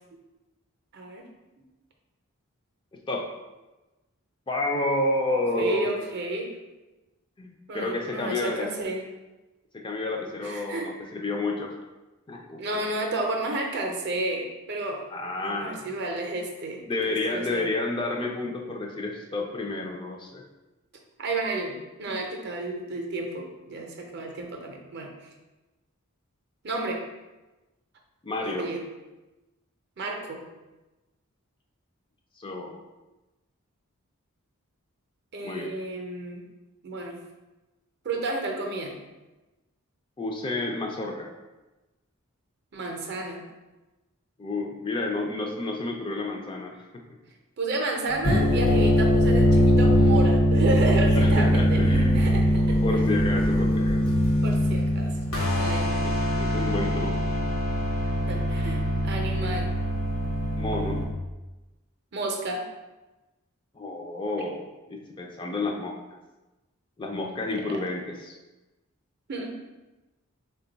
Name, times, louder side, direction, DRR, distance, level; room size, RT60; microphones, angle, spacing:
voice 1, 0.9-1.3 5.4-6.5 7.7-9.0 10.4-11.1 12.6-15.0 15.4-17.7 21.2-25.1 26.6-27.0 28.4-28.8 30.0-30.4 35.3-36.4 36.8-37.2 38.0-38.9 42.7-43.4 47.6-52.4 52.7-53.0 54.4-55.1 55.6-56.0 58.3-59.7 62.1-62.6 67.7-67.8 69.3-69.5, right 2 dB, 50° right, 2 dB, 0.5 m, -31 dB
voice 2, 4.5-5.9 7.4-8.7 9.7-11.7 12.3-12.8 15.1-15.9 16.9-20.4 28.2-28.7 32.4-32.8 35.4-35.7 40.2-41.3 44.4-46.8 51.1-52.2 52.8-54.1 55.8-56.1 56.4-57.2 60.6-61.0 63.8-65.9 67.0-68.4, left 2 dB, 25° left, 1 dB, 0.3 m, -30 dB
sound 1, 48.1-61.0, equal, 75° left, 0.9 m, -22 dB
3.7 x 2.2 x 3.9 m, 1.1 s
head